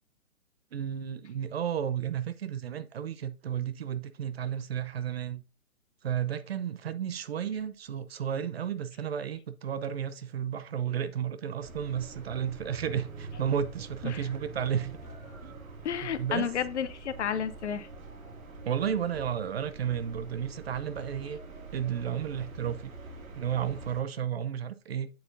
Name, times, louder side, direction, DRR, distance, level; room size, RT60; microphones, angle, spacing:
voice 1, 0.7-5.4 6.0-15.0 15.4-15.5 16.0-16.5 18.6-21.4 21.7-22.9 23.3-25.1, right 9 dB, 45° right, 0.7 m, -32 dB
sound 1, 11.6-24.0, right 3 dB, 70° right, 2.4 m, -45 dB
voice 2, 15.8-17.9, left 8 dB, 50° left, 0.8 m, -31 dB
8.8 x 7.3 x 2.6 m
hypercardioid pair, 145°, 43 cm